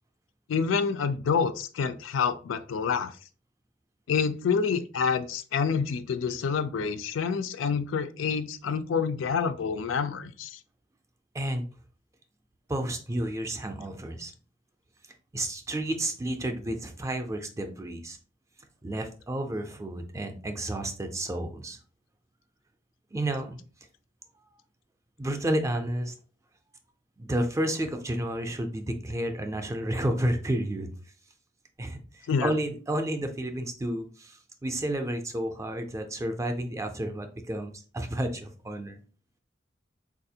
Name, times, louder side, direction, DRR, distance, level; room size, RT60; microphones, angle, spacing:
voice 1, 0.5-3.1 4.1-10.6 32.3-32.5, left 6 dB, 85° left, 11 dB, 0.4 m, -27 dB
voice 2, 11.3-11.7 12.7-14.3 15.3-18.2 18.8-21.8 23.1-23.6 25.2-26.1 27.2-30.9 31.8-39.0, right 1 dB, 15° right, 6 dB, 0.4 m, -31 dB
4.0 x 2.4 x 2.7 m, 0.39 s
head